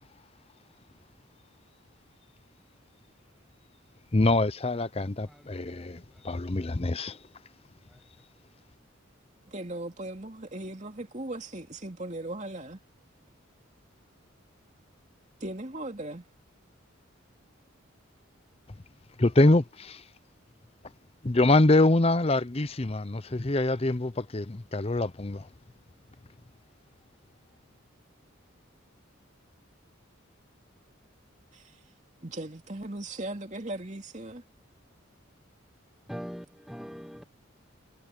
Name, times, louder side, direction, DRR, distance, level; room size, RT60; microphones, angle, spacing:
voice 1, 4.1-7.2 19.2-20.0 21.2-25.5, left 2 dB, 30° left, 0.7 m, -25 dB
voice 2, 5.2-6.2 7.9-8.0 36.1-37.2, equal, ahead, 1.0 m, -43 dB
voice 3, 9.5-12.8 15.4-16.2 31.5-31.8 32.2-34.4, right 1 dB, 35° right, 2.8 m, -38 dB
head